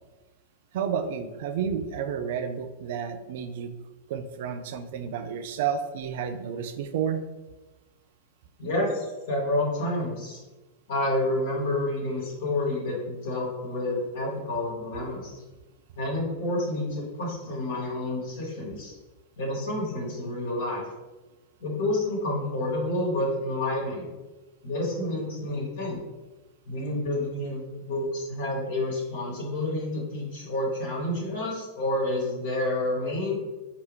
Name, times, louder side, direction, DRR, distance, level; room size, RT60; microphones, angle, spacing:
voice 1, 0.7-3.7 4.1-7.2, right 7 dB, 65° right, 9 dB, 0.4 m, -31 dB
voice 2, 8.6-10.4 10.9-15.4 16.0-19.0 19.4-20.8 21.6-24.0 24.6-26.0 26.6-33.3, left 1 dB, 70° left, -5 dB, 1.2 m, -29 dB
4.5 x 2.9 x 3.3 m, 1.2 s
hypercardioid pair, 100°, 0 cm